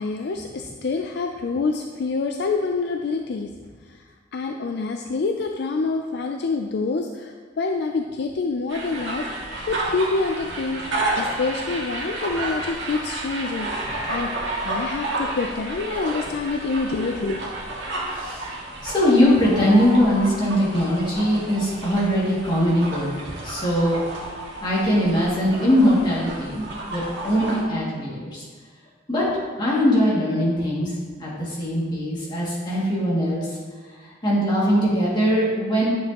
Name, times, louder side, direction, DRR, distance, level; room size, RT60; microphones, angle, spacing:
voice 1, 0.0-3.5 3.8-4.0 4.3-14.3 14.6-17.5, left 3 dB, 60° left, 4 dB, 0.4 m, -27 dB
sound 1, 8.7-27.6, right 2 dB, 65° right, 1.7 m, -31 dB
voice 2, 18.1-18.4 18.8-24.0 24.6-28.4 29.1-29.3 29.6-30.9 31.2-33.6 34.0-35.9, equal, 25° left, -7 dB, 2.2 m, -21 dB
10.0 x 6.3 x 2.9 m, 1.5 s
head